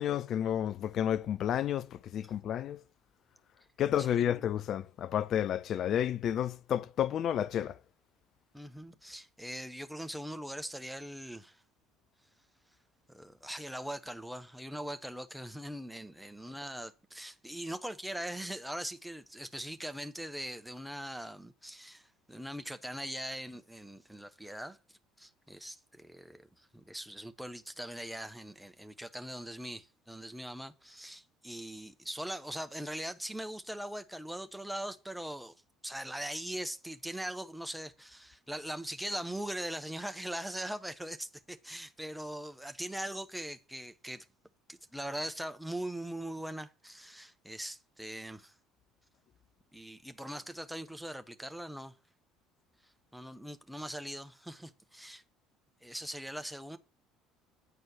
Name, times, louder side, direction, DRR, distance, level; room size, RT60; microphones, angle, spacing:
voice 1, 0.0-2.8 3.8-7.8, left 10 dB, 45° left, 0.4 m, -31 dB
voice 2, 8.5-11.6 13.1-24.8 25.2-35.5 35.8-44.3 44.7-48.5 49.7-52.0 52.8-55.2 55.8-56.8, right 1 dB, 5° right, 0.8 m, -41 dB
9.7 x 4.5 x 6.1 m
figure-of-eight pair, 60°, 0 cm